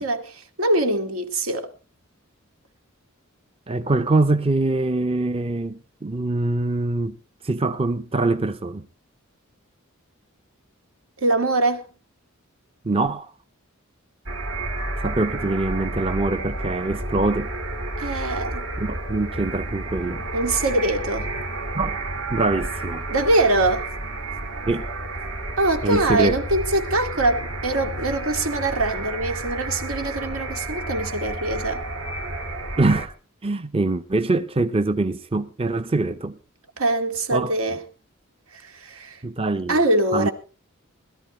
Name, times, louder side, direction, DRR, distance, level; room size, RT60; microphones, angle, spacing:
voice 1, 0.0-1.7 11.2-11.8 18.0-18.6 20.3-21.3 23.1-23.9 25.6-31.8 36.8-37.8 38.5-39.2 39.7-40.3, right 2 dB, 85° right, 2.3 m, -23 dB
voice 2, 3.7-7.2 7.4-8.9 12.8-13.3 15.0-17.5 18.8-20.2 21.7-22.0 22.3-23.1 24.7-24.9 25.8-26.3 32.8-33.1 33.4-36.4 37.3-37.5 39.2-39.8 40.1-40.3, right 2 dB, 25° right, 0.6 m, -23 dB
sound 1, 14.3-33.1, right 2 dB, 65° right, 2.0 m, -31 dB
21.5 x 13.0 x 3.2 m
head